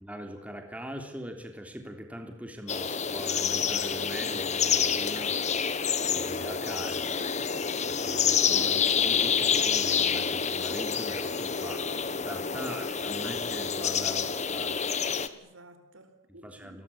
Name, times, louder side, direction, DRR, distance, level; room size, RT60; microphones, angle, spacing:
voice 1, 0.0-5.4 6.1-7.3 7.9-11.8 12.1-14.8 16.4-16.8, equal, 5° right, 4 dB, 3.3 m, -41 dB
sound 1, 2.7-15.3, left 6 dB, 35° left, 1.5 m, -28 dB
voice 2, 11.5-12.9 15.1-16.8, right 1 dB, 80° right, 9 dB, 4.5 m, -55 dB
27.5 x 21.5 x 8.7 m, 0.81 s
head